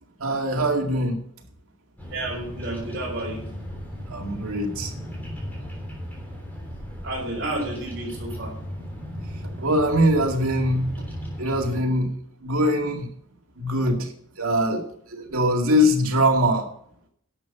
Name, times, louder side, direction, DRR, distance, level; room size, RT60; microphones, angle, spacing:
voice 1, 0.2-1.2 4.1-4.9 9.6-11.0 11.4-12.1 12.4-13.1 13.6-14.1 14.4-16.7, equal, 80° right, 2 dB, 2.3 m, -22 dB
Bird vocalization bird call bird song, 2.0-11.8, equal, 10° left, 3.4 m, -36 dB
voice 2, 2.1-3.4 7.0-8.5, right 1 dB, 50° right, -7 dB, 4.7 m, -31 dB
11.5 x 7.1 x 7.3 m, 0.64 s
head